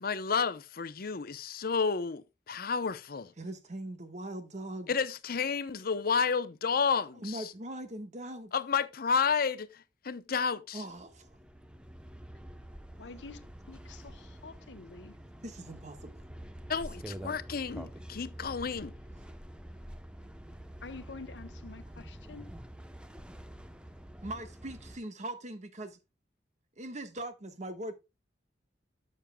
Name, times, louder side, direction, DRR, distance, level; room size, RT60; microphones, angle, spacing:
voice 1, 0.0-3.3 4.9-7.5 8.5-10.8 16.7-18.9, left 5 dB, 55° left, 0.7 m, -31 dB
voice 2, 3.4-5.0 7.1-8.5 10.7-11.3 15.4-16.3 24.2-26.0 26.8-27.9, right 1 dB, 40° right, 1.4 m, -41 dB
sound 1, 10.9-25.0, right 1 dB, 5° right, 0.8 m, -47 dB
voice 3, 13.0-15.2 20.8-22.5, left 3 dB, 75° left, 1.0 m, -48 dB
12.0 x 7.5 x 2.2 m
head